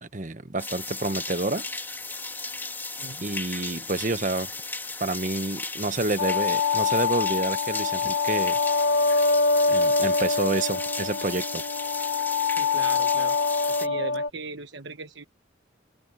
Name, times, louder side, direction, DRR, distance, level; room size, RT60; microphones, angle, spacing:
voice 1, 0.0-1.6 3.2-4.5 5.0-8.6 9.7-11.6, right 2 dB, 40° right, 1.1 m, -29 dB
sound 1, 0.6-13.9, left 3 dB, 10° left, 3.6 m, -35 dB
sound 2, 6.2-14.3, left 4 dB, 75° left, 1.7 m, -24 dB
voice 2, 12.6-13.4 13.8-15.2, right 3 dB, 70° right, 1.3 m, -38 dB
open air
head